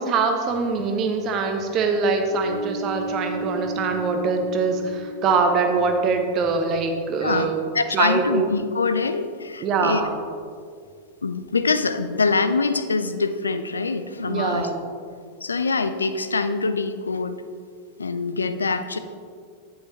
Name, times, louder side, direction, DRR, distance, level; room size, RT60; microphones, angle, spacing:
voice 1, 0.0-7.6 7.9-8.5 9.6-10.2 14.3-14.8, right 4 dB, 35° right, 5 dB, 1.0 m, -23 dB
sound 1, 2.3-6.6, right 1 dB, 15° left, 1.6 m, -34 dB
voice 2, 7.7-10.0 11.2-14.7 15.4-17.4 18.0-19.0, left 4 dB, 75° left, 10 dB, 0.4 m, -24 dB
8.4 x 8.3 x 3.1 m, 2.2 s
figure-of-eight pair, 90°, 0 cm